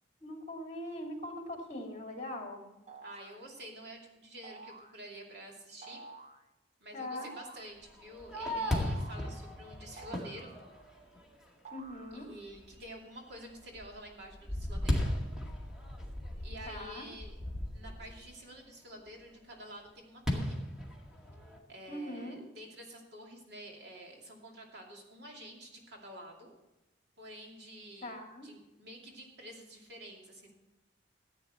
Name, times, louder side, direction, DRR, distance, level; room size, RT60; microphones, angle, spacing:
voice 1, 0.2-2.7 6.9-7.3 11.7-12.3 16.7-17.1 21.9-22.4 28.0-28.5, left 1 dB, 40° left, 2 dB, 2.3 m, -41 dB
sound 1, 2.9-3.4 4.4-5.0 5.8-6.4 7.1-7.8 8.6-9.3 10.0-10.9 11.6-12.5, right 3 dB, 40° right, 0.9 m, -50 dB
voice 2, 3.0-6.0 6.8-10.5 12.1-15.1 16.4-17.3 17.7-20.6 21.7-26.5 27.2-28.1 28.4-30.5, right 1 dB, 65° right, 0 dB, 2.7 m, -49 dB
Fireworks, 7.8-11.3 11.9-12.0 12.5-12.9 13.3-18.2 20.3-21.6, left 1 dB, 5° right, 1.9 m, -36 dB
14.5 x 9.0 x 4.3 m, 0.97 s
head